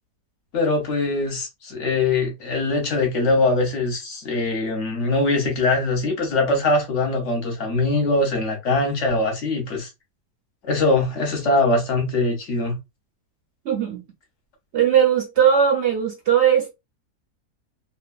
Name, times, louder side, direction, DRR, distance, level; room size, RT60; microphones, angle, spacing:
voice 1, 0.5-9.9 10.7-12.8, left 2 dB, 55° left, 1.0 m, -22 dB
voice 2, 13.7-14.0 14.7-16.7, right 8 dB, 70° right, 0.6 m, -19 dB
2.8 x 2.2 x 2.3 m
omnidirectional pair, 1.7 m